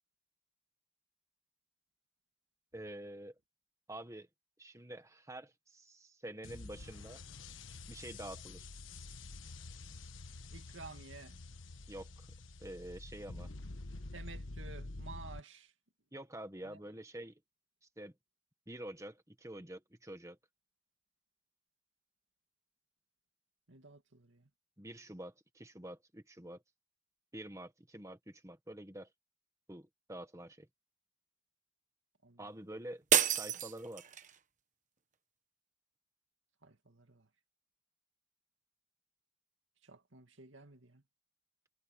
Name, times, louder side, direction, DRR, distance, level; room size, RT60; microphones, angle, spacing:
voice 1, 2.7-3.3 3.9-4.3 4.6-7.2 7.9-8.7 11.9-12.3 12.6-13.5 16.1-17.3 18.0-18.1 18.7-20.4 24.8-26.6 27.3-29.1 29.7-30.7 32.4-34.1, right 1 dB, 15° right, 1.5 m, -47 dB
sound 1, 6.4-15.4, left 2 dB, 85° left, 1.3 m, -48 dB
voice 2, 10.5-11.4 14.1-15.7 16.6-16.8 23.7-24.5 32.2-32.4 36.6-37.3 39.8-41.0, right 3 dB, 80° right, 2.4 m, -52 dB
sound 2, 33.1-34.4, right 9 dB, 40° right, 1.2 m, -30 dB
head